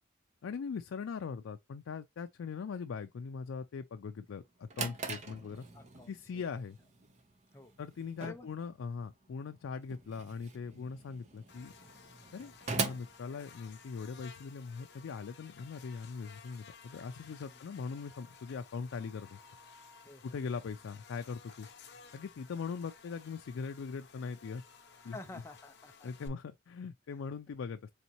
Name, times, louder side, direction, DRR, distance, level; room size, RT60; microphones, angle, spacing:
voice 1, 0.4-5.7 6.1-6.8 7.8-11.7 12.3-19.4 20.2-21.7 22.1-24.6 25.0-25.2 26.0-27.9, left 5 dB, 85° left, 0.4 m, -41 dB
Drawer open or close, 4.4-14.1, right 4 dB, 35° right, 0.7 m, -42 dB
voice 2, 5.7-6.4 7.5-7.7 8.2-8.5 17.5-17.6 20.0-20.4 25.0-26.1, left 2 dB, 15° left, 0.4 m, -49 dB
Buzz, 11.5-26.3, left 5 dB, 55° left, 0.8 m, -56 dB
4.1 x 3.5 x 2.9 m
head